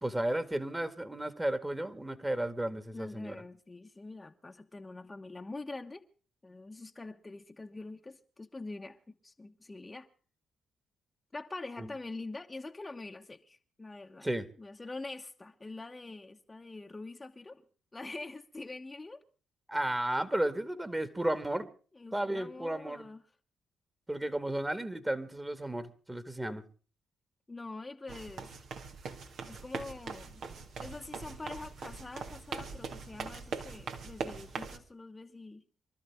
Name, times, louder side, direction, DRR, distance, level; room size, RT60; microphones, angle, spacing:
voice 1, 0.0-3.4 11.8-11.9 14.2-14.5 19.7-21.7 22.1-23.1 24.1-26.6, right 1 dB, 15° right, 1.9 m, -33 dB
voice 2, 2.9-6.0 6.4-10.1 11.3-14.3 14.6-17.6 17.9-19.2 21.9-23.2 27.5-28.5 29.5-30.4 30.8-35.6, left 3 dB, 25° left, 1.2 m, -45 dB
sound 1, 28.1-34.8, right 4 dB, 65° right, 1.9 m, -42 dB
25.0 x 13.0 x 3.6 m
hypercardioid pair, 45°, 0 cm